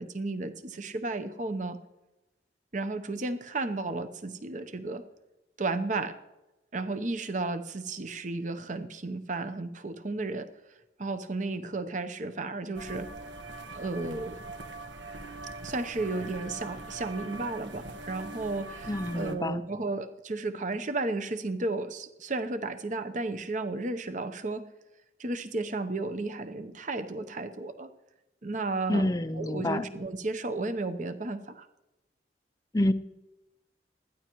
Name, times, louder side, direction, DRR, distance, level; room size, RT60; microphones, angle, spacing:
voice 1, 0.0-1.8 2.7-5.0 5.6-6.1 6.7-10.5 11.0-13.1 13.7-14.4 15.6-24.6 25.2-27.9 28.4-29.1 29.4-31.7, right 2 dB, 45° right, 10 dB, 0.8 m, -33 dB
sound 1, 12.7-19.3, right 2 dB, 90° right, 1.2 m, -42 dB
voice 2, 18.9-19.6 28.9-29.9 32.7-32.9, left 1 dB, 20° left, 12 dB, 0.5 m, -28 dB
20.0 x 13.5 x 3.0 m, 0.99 s
head